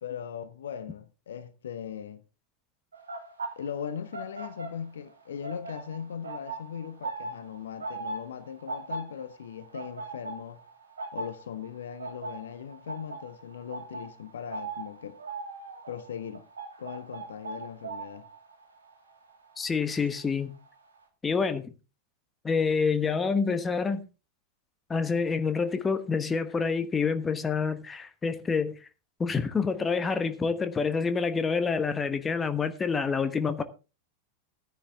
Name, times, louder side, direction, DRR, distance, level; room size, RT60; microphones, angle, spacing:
voice 1, 0.0-2.2 3.6-10.6 11.1-15.2 15.9-16.5 16.8-18.3, left 8 dB, 65° left, 1.0 m, -39 dB
sound 1, 2.9-5.1 5.4-20.3 20.5-20.9, right 3 dB, 75° right, 2.5 m, -40 dB
voice 2, 19.6-20.5 21.2-21.7 22.4-24.0 24.9-28.7 29.2-33.6, left 5 dB, 15° left, 1.2 m, -27 dB
13.0 x 9.9 x 3.6 m
figure-of-eight pair, 90°, 0 cm